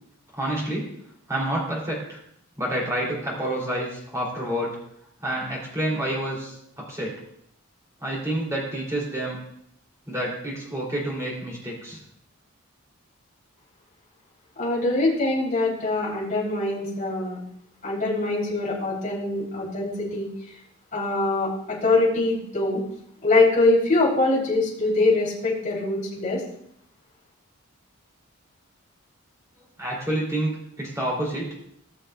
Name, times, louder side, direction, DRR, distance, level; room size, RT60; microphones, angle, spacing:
voice 1, 0.3-0.9 1.3-2.2 2.6-4.8 5.2-6.6 6.9-7.1 8.0-9.4 10.1-12.0 29.8-30.5 30.8-31.5, right 1 dB, 15° right, -4 dB, 3.2 m, -28 dB
voice 2, 14.6-17.4 17.8-20.3 20.9-22.8 23.2-26.4, left 2 dB, 35° left, -6 dB, 3.8 m, -23 dB
18.5 x 6.6 x 2.5 m, 0.71 s
head